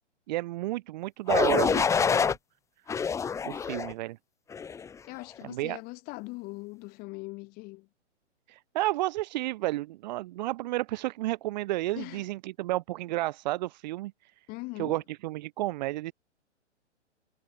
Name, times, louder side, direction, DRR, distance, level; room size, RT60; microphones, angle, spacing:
voice 1, 0.3-2.3 3.4-4.2 5.4-5.8 8.5-14.5 14.8-16.1, right 17 dB, 35° right, 3.6 m, -31 dB
sound 1, 1.3-2.4 2.9-3.9 4.5-4.9, left 6 dB, 10° left, 1.4 m, -26 dB
voice 2, 5.0-7.9 12.0-12.3 14.5-15.0, left 24 dB, 25° left, 3.6 m, -41 dB
figure-of-eight pair, 120°, 36 cm